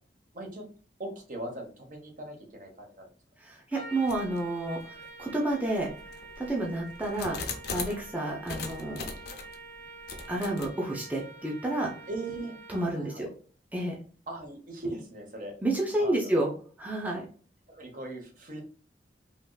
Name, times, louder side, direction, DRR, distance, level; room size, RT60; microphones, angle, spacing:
voice 1, 0.3-0.7 1.0-3.1 12.1-12.5 12.9-13.3 14.3-15.6 16.0-16.4 17.7-18.6, right 2 dB, 50° right, 2 dB, 0.8 m, -39 dB
voice 2, 3.4-5.9 6.4-7.4 7.7-9.1 10.3-11.9 12.7-13.3 13.7-14.0 15.6-16.5 16.8-17.2, right 1 dB, 10° right, -2 dB, 0.5 m, -30 dB
Trumpet, 3.7-13.1, right 3 dB, 85° right, 1.5 m, -47 dB
sound 1, 4.1-4.4 5.0-5.1 5.8-8.1 8.5-9.6 10.1-10.7, left 4 dB, 60° left, 0.6 m, -39 dB
3.4 x 2.5 x 2.2 m, 0.42 s
head